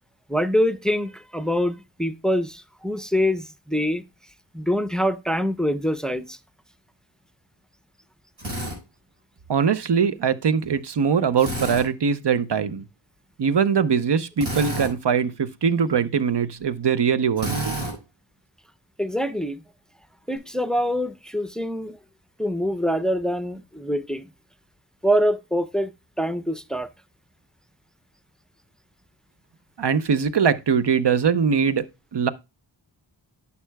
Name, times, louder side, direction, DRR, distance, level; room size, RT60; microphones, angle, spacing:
voice 1, 0.3-4.0 4.5-6.4 19.0-19.6 20.3-22.0 22.4-24.2 25.0-25.9 26.2-26.9, equal, ahead, 0.5 m, -24 dB
Drill, 8.4-8.8 11.4-11.9 14.4-14.9 17.4-17.9, right 1 dB, 85° right, 4.3 m, -29 dB
voice 2, 9.5-12.9 13.4-17.8 29.8-32.3, right 6 dB, 60° right, 0.7 m, -22 dB
11.0 x 7.0 x 2.2 m
wide cardioid pair, 65°, 46 cm